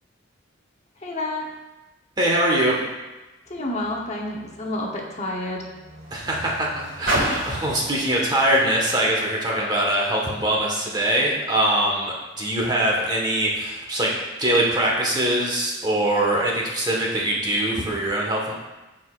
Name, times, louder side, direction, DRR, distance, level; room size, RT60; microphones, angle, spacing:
voice 1, 1.0-1.5 3.5-5.6, left 1 dB, 35° left, -1 dB, 1.0 m, -29 dB
voice 2, 2.2-2.9 6.1-14.1 14.4-18.5, right 1 dB, 20° right, -2 dB, 1.4 m, -22 dB
Car, 3.4-10.0 10.9-11.0, right 1 dB, 90° right, 2.9 m, -33 dB
14.5 x 5.0 x 2.5 m, 1.1 s
head